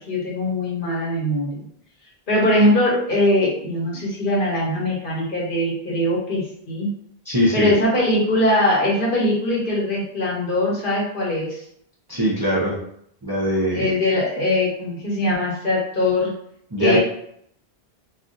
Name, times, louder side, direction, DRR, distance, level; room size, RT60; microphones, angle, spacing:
voice 1, 0.0-1.6 2.3-6.9 7.5-11.6 13.7-16.3 16.8-17.0, left 1 dB, 60° left, -4 dB, 1.1 m, -21 dB
voice 2, 7.3-7.7 12.1-12.8 13.2-13.9 16.7-17.0, equal, 30° right, -6 dB, 0.5 m, -21 dB
2.4 x 2.4 x 3.8 m, 0.70 s
omnidirectional pair, 1.0 m